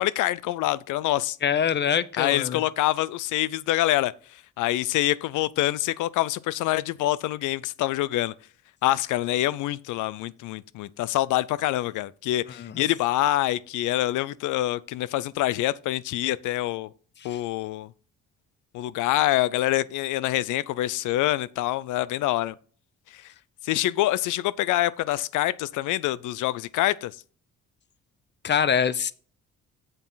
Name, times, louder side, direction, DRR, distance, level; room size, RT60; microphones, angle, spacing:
voice 1, 0.0-1.4 2.2-8.3 8.8-16.9 17.2-17.9 18.7-22.5 23.1-23.3 23.6-27.1, left 15 dB, 85° left, 0.5 m, -26 dB
voice 2, 1.4-2.6 12.6-12.8 17.2-17.4 28.4-29.1, left 8 dB, 35° left, 0.7 m, -24 dB
8.1 x 7.2 x 3.9 m
cardioid pair, 90°, 30 cm